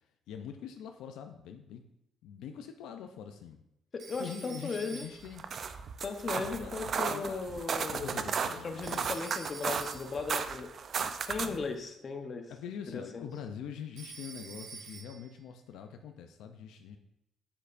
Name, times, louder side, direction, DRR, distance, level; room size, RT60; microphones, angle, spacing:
voice 1, 0.0-1.8 2.2-3.6 4.2-5.4 6.3-7.6 7.9-9.1 9.9-10.2 11.3-11.7 12.5-17.0, left 8 dB, 85° left, 6 dB, 0.5 m, -44 dB
voice 2, 3.9-5.1 6.0-10.7 11.3-12.5 12.9-13.2, left 4 dB, 40° left, 5 dB, 0.9 m, -37 dB
Telephone, 4.0-5.4 8.8-10.2 14.0-15.4, right 5 dB, 65° right, 0.9 m, -48 dB
sound 1, 5.2-11.7, right 6 dB, 50° right, 0.4 m, -35 dB
7.2 x 6.7 x 2.5 m, 0.85 s
cardioid pair, 100°, 0 cm